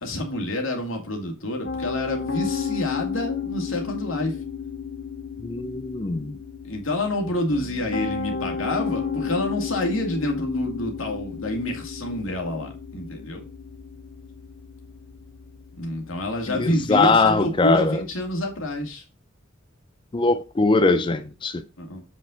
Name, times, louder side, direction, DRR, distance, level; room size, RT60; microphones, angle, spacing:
voice 1, 0.0-4.4 6.6-13.4 15.7-19.0 21.8-22.0, left 1 dB, 90° left, 2.2 m, -28 dB
Piano, 1.6-18.8, left 6 dB, 65° left, 1.2 m, -33 dB
voice 2, 5.4-6.3 16.5-18.0 20.1-21.6, left 3 dB, 25° left, 0.4 m, -21 dB
7.4 x 5.5 x 3.8 m
head